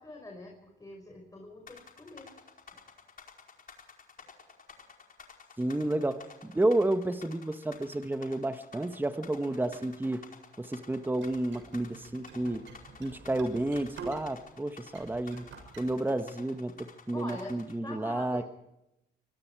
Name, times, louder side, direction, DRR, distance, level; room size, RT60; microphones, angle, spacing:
voice 1, 0.0-2.6 17.1-18.4, left 2 dB, 15° left, 1 dB, 5.4 m, -45 dB
sound 1, 1.7-17.7, left 6 dB, 45° left, 4.9 m, -51 dB
voice 2, 5.6-10.2 10.6-12.6 13.0-15.4 15.8-18.4, right 1 dB, 10° right, 9 dB, 1.4 m, -31 dB
sound 2, 11.2-14.5 14.8-15.8, right 3 dB, 75° right, 6.9 m, -47 dB
25.0 x 22.5 x 4.8 m, 0.88 s
cardioid pair, 90°, 20 cm